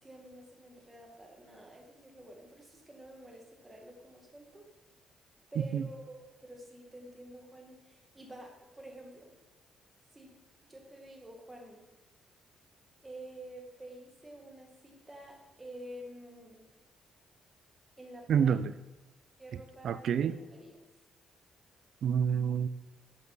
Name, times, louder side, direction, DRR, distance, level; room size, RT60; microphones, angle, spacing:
voice 1, 0.0-4.6 5.5-9.3 10.1-10.3 10.6-11.8 13.0-16.6 18.0-18.5 19.4-20.7, right 1 dB, 15° right, 0 dB, 1.6 m, -49 dB
voice 2, 18.3-18.7 19.8-20.4 22.0-22.7, right 7 dB, 65° right, 14 dB, 0.3 m, -27 dB
6.9 x 5.2 x 4.0 m, 1.1 s
cardioid pair, 90°, 0 cm